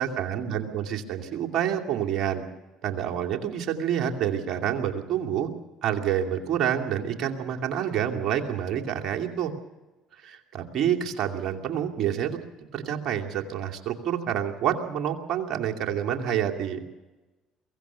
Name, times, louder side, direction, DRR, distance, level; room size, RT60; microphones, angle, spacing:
voice 1, 0.0-2.4 2.8-5.5 5.8-9.5 10.2-12.4 12.7-16.8, right 9 dB, 60° right, 3 dB, 2.6 m, -28 dB
23.5 x 16.5 x 7.0 m, 1.1 s
supercardioid pair, 75°, 0 cm